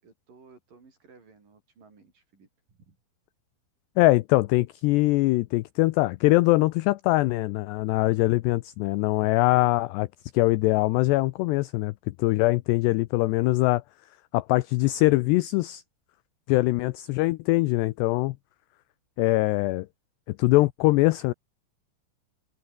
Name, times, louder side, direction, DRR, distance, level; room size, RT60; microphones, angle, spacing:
voice 1, 0.0-3.0, right 4 dB, 45° right, 7.2 m, -56 dB
voice 2, 4.0-10.1 10.3-13.8 14.3-15.8 16.5-18.4 19.2-19.9 20.3-21.3, left 20 dB, 85° left, 2.4 m, -22 dB
omnidirectional pair, 5.6 m